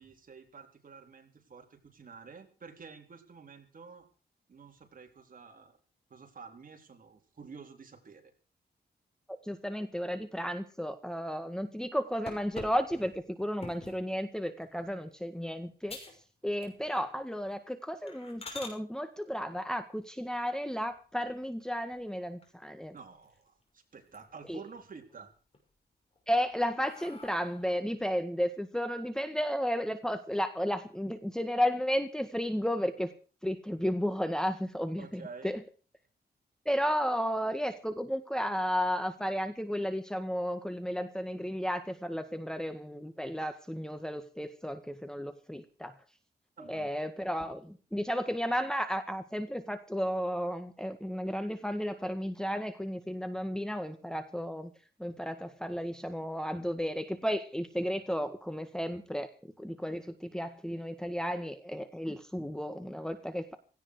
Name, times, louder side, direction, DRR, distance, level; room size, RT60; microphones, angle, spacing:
voice 1, 0.0-4.1 4.5-5.8 6.1-8.3 22.9-25.3 35.0-35.5 46.6-46.9, right 5 dB, 50° right, 3 dB, 4.1 m, -50 dB
voice 2, 9.3-16.0 16.4-22.9 24.5-24.6 26.3-33.1 33.4-35.6 36.7-45.9 46.6-54.7 55.0-59.3 59.6-63.5, equal, 5° left, 7 dB, 1.7 m, -33 dB
sound 1, 12.3-14.0 14.6-14.9 15.3-15.4 15.9-16.2 16.5-17.1 17.4-17.6 18.1-18.8 20.8-21.4 21.9-22.0 22.4-22.5 22.8-23.6 23.9-24.5 24.9-25.6 26.1-27.8, left 3 dB, 35° left, 6.2 m, -47 dB
17.5 x 16.0 x 4.8 m, 0.38 s
wide cardioid pair, 115°, 18 cm